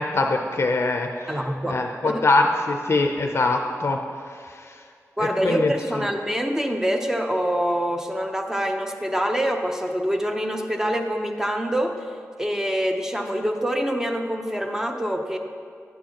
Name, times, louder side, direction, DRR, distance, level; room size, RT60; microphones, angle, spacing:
voice 1, 0.0-4.0 5.2-6.1, left 3 dB, 45° left, 3 dB, 0.5 m, -23 dB
voice 2, 1.3-2.3 5.2-12.0 12.4-15.4, equal, 10° right, 4 dB, 0.7 m, -25 dB
10.5 x 8.9 x 2.9 m, 2.2 s
wide cardioid pair, 95°, 6 cm